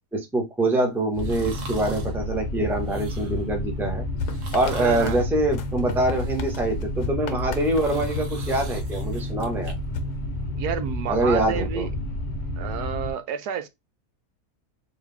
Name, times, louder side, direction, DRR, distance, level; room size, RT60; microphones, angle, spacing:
voice 1, 0.1-4.0 4.5-9.7 11.1-11.9, right 1 dB, ahead, 0.6 m, -24 dB
sound 1, 1.2-13.1, left 1 dB, 50° left, 0.5 m, -30 dB
sound 2, 1.2-2.1 2.7-3.5 4.2-5.3 5.8-6.8 7.3-9.7 10.1-10.2, right 4 dB, 55° right, 1.1 m, -44 dB
sound 3, 4.2-9.0 9.6-10.9, left 4 dB, 75° left, 1.2 m, -37 dB
voice 2, 4.8-5.2 10.6-11.9 12.6-13.7, right 8 dB, 75° right, 1.1 m, -30 dB
3.8 x 2.7 x 3.2 m
omnidirectional pair, 1.7 m